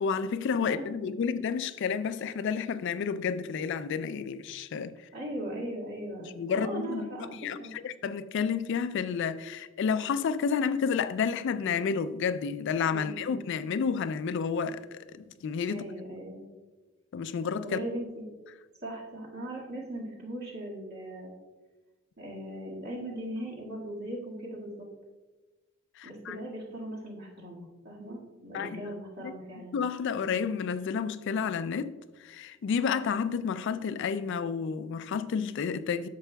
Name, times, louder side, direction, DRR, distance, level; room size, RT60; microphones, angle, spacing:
voice 1, 0.0-4.9 6.2-7.6 7.8-15.8 17.1-17.8 26.0-26.4 28.5-28.9 29.2-29.3 29.7-31.9 32.2-36.1, left 6 dB, 60° left, 0.3 m, -30 dB
voice 2, 5.1-7.7 12.9-13.4 15.7-16.4 17.6-18.2 18.8-21.3 22.2-24.9 26.0-29.8, right 1 dB, 50° right, 1.8 m, -39 dB
10.5 x 6.7 x 2.2 m
head